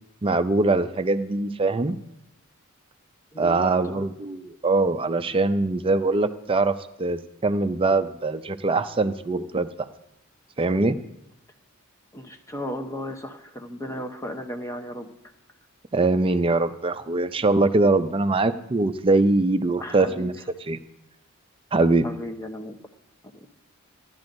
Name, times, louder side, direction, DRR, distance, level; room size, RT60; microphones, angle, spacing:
voice 1, 0.2-2.0 3.4-9.9 10.6-11.0 15.9-20.3 20.7-20.8 21.7-22.1, right 2 dB, 25° right, 10 dB, 0.5 m, -22 dB
voice 2, 3.3-4.1 12.1-15.1 19.8-20.3 22.0-22.8 23.3-23.5, equal, 15° left, 4 dB, 0.8 m, -35 dB
15.5 x 11.5 x 2.6 m, 0.85 s
head